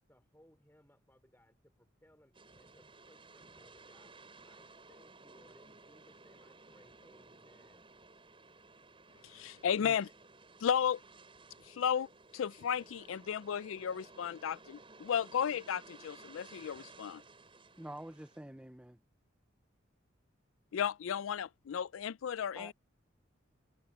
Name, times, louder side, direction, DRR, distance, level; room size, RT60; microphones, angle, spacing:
voice 1, 0.1-7.9, equal, 10° left, 4.9 m, -66 dB
sound 1, 2.3-18.4, right 3 dB, 25° right, 7.5 m, -57 dB
voice 2, 9.2-10.1 10.6-11.0 11.6-17.2 20.7-22.7, left 8 dB, 75° left, 0.4 m, -34 dB
voice 3, 17.8-19.0 22.5-22.7, right 1 dB, 5° right, 0.5 m, -47 dB
head